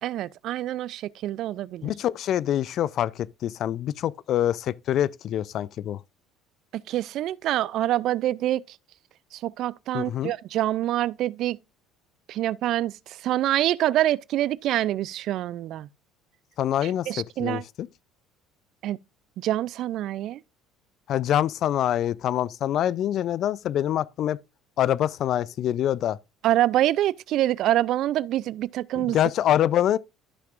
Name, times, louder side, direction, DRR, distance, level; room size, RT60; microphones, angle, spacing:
voice 1, 0.0-1.9 6.7-8.8 9.3-11.6 12.3-15.9 16.8-17.6 18.8-19.0 19.4-20.4 26.4-29.2, right 13 dB, 60° right, 0.3 m, -26 dB
voice 2, 1.8-6.0 9.9-10.3 16.6-17.9 21.1-24.4 24.8-26.2 29.0-30.0, left 11 dB, 55° left, 0.4 m, -25 dB
13.0 x 5.9 x 2.5 m
hypercardioid pair, 75°, 0 cm